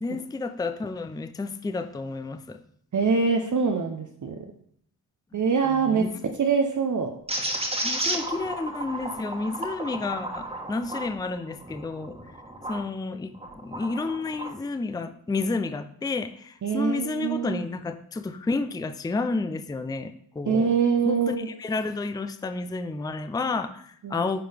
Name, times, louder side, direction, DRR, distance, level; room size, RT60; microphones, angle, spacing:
voice 1, 0.0-2.6 5.3-6.3 7.8-12.2 12.7-20.7 21.0-24.4, left 3 dB, 10° left, 9 dB, 0.4 m, -31 dB
voice 2, 2.9-4.4 5.3-6.0 6.4-7.1 16.6-17.6 20.5-21.5 24.0-24.2, right 5 dB, 50° right, 4 dB, 0.7 m, -24 dB
sound 1, 7.3-12.8 13.3-14.6, right 1 dB, 15° right, 1.4 m, -33 dB
9.8 x 3.8 x 3.4 m, 0.65 s
cardioid pair, 50°, 39 cm